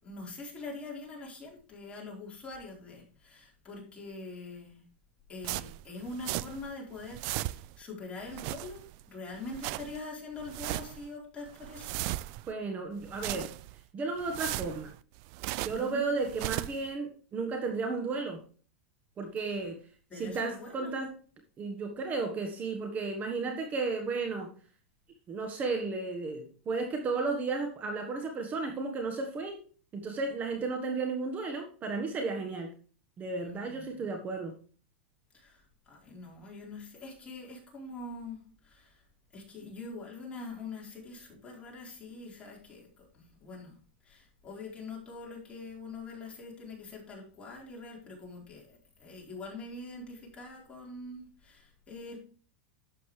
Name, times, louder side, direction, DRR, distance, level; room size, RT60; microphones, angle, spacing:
voice 1, 0.0-4.9 5.3-12.0 15.8-16.0 19.4-19.6 20.1-21.1 23.4-23.6 33.4-34.1 35.3-39.0 39.3-43.8 44.0-52.2, left 3 dB, 20° left, -2 dB, 4.2 m, -44 dB
sound 1, 5.4-6.7 7.0-7.8 8.2-9.0 9.4-10.0 10.4-11.1 11.5-12.5 13.0-13.8 14.2-15.9 16.2-16.9, right 18 dB, 50° right, 0.4 m, -37 dB
voice 2, 12.5-13.5 13.9-14.9 15.6-18.4 19.2-19.8 20.1-21.1 21.6-24.5 25.3-29.6 29.9-32.7 33.2-34.5, right 4 dB, 25° right, 4 dB, 1.3 m, -33 dB
11.5 x 7.6 x 3.3 m, 0.41 s
hypercardioid pair, 130°, 6 cm